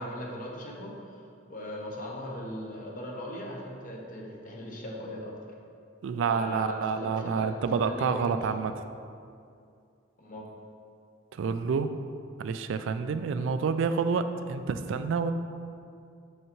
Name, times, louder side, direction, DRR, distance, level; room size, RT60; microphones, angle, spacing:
voice 1, 0.0-5.4 6.3-8.7 10.2-10.5, equal, 40° left, -1 dB, 0.9 m, -39 dB
voice 2, 6.0-8.7 11.3-11.9 12.4-15.3, right 5 dB, 65° right, 10 dB, 0.3 m, -28 dB
6.5 x 6.4 x 3.0 m, 2.4 s
head